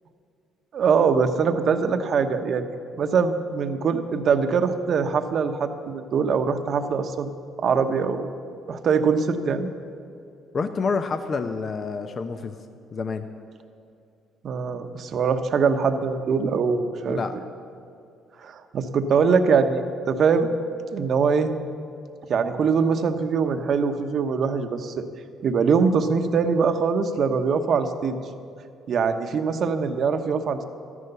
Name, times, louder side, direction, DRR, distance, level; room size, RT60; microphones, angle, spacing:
voice 1, 0.7-2.7 3.0-7.3 7.6-8.2 8.7-9.7 14.4-17.2 18.4-20.5 20.9-21.5 22.3-25.0 25.4-28.2 28.9-30.6, right 5 dB, 55° right, 7 dB, 1.0 m, -22 dB
voice 2, 10.5-12.6 12.9-13.2 17.1-17.4, left 4 dB, 45° left, 8 dB, 0.7 m, -28 dB
13.5 x 11.0 x 6.8 m, 2.5 s
cardioid pair, 85°, 0 cm